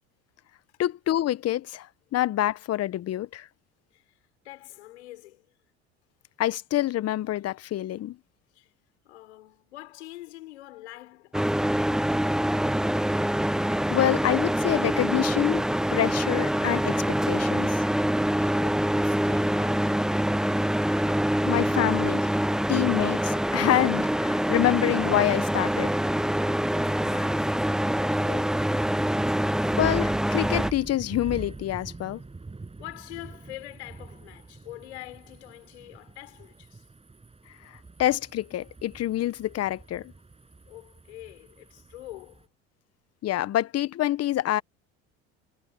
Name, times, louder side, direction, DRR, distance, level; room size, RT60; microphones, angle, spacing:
voice 1, 0.8-1.9 2.1-3.5 6.4-8.2 13.9-15.6 15.9-17.8 20.9-21.2 21.5-22.3 22.7-25.9 29.8-32.2 38.0-40.1 43.2-44.6, left 13 dB, 50° left, 1.1 m, -26 dB
voice 2, 4.4-5.5 8.5-8.7 9.0-12.0 18.2-20.2 26.7-27.6 27.9-28.8 32.8-36.9 40.6-42.5, left 16 dB, 90° left, 4.9 m, -45 dB
sound 1, 11.3-30.7, equal, ahead, 0.8 m, -25 dB
sound 2, 28.1-42.4, right 3 dB, 20° right, 6.8 m, -44 dB
hypercardioid pair, 75°, 33 cm